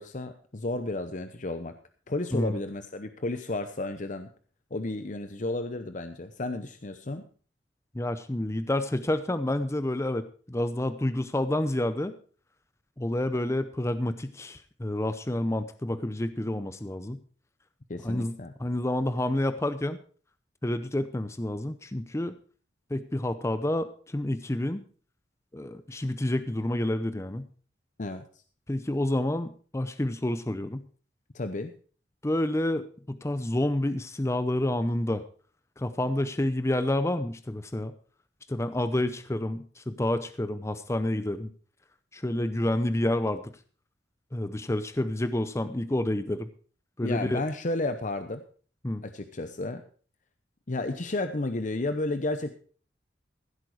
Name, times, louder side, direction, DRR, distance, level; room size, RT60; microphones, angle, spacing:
voice 1, 0.0-1.7 2.1-4.3 4.7-7.2 17.9-18.5 28.0-28.2 31.3-31.7 47.0-48.4 49.0-49.8 50.7-52.6, left 2 dB, 45° left, 9 dB, 0.8 m, -32 dB
voice 2, 7.9-12.1 13.0-17.2 18.0-18.3 18.6-20.0 20.6-22.3 22.9-24.8 25.5-27.5 28.7-30.8 32.2-35.2 35.8-37.9 38.5-41.5 42.1-43.4 44.3-46.5 47.0-47.4 48.8-49.0, left 1 dB, 15° left, 11 dB, 0.6 m, -29 dB
15.5 x 8.2 x 4.8 m, 0.41 s
head